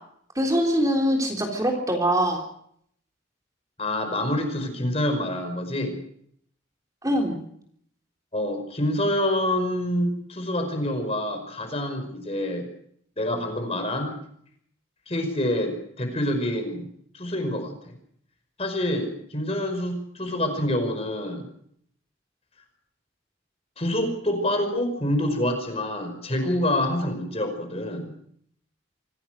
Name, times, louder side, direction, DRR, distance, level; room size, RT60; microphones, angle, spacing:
voice 1, 0.4-2.4 7.0-7.4, equal, 15° right, 1 dB, 3.6 m, -23 dB
voice 2, 3.8-6.0 8.3-12.7 13.2-14.1 15.1-16.9 17.1-17.9 18.6-21.5 23.8-28.1, left 1 dB, 30° left, 6 dB, 5.3 m, -27 dB
25.5 x 17.5 x 6.5 m, 0.66 s
head